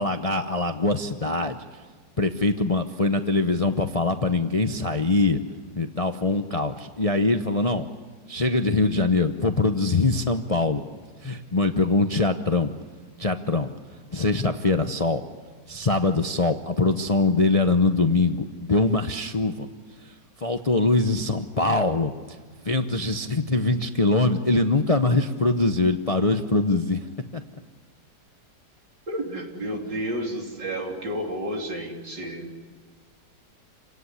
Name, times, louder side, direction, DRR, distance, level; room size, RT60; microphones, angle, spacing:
voice 1, 0.0-1.6 2.2-5.4 5.8-7.9 8.3-10.8 11.2-12.7 13.2-13.7 14.1-15.2 15.7-19.7 20.4-22.1 22.6-27.1 27.3-27.4, left 3 dB, 30° left, 7 dB, 0.6 m, -23 dB
voice 2, 29.1-32.5, right 1 dB, 75° right, 1 dB, 4.1 m, -31 dB
29.0 x 17.5 x 9.9 m, 1.4 s
omnidirectional pair, 1.9 m